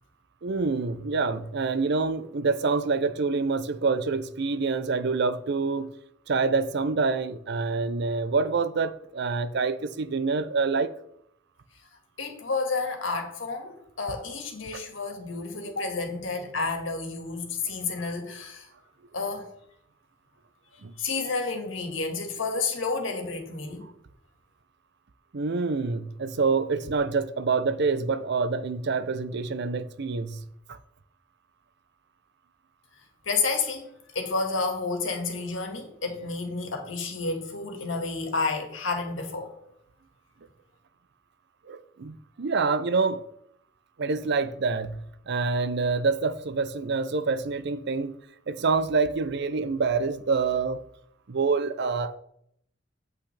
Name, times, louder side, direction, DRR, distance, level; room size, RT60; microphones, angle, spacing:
voice 1, 0.4-5.9 6.3-10.9 14.7-14.8 17.7-17.8 20.8-20.9 25.3-30.4 30.7-30.8 41.7-43.2 44.0-45.0 45.3-48.2 48.5-50.8 51.3-52.2, right 4 dB, 60° right, 0.6 m, -26 dB
voice 2, 12.2-18.7 19.1-19.5 21.0-23.8 33.3-33.9 34.1-39.5, left 4 dB, 85° left, 1.8 m, -30 dB
8.6 x 8.1 x 3.3 m
head